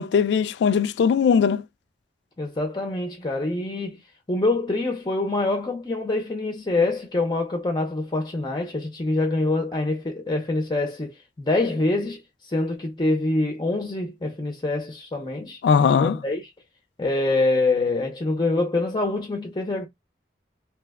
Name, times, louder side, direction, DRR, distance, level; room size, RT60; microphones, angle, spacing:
voice 1, 0.0-1.6 15.6-16.2, left 6 dB, 85° left, 0.3 m, -19 dB
voice 2, 2.4-4.0 4.3-12.2 12.4-16.5 17.0-19.9, left 2 dB, 25° left, 0.5 m, -25 dB
2.9 x 2.1 x 3.4 m
head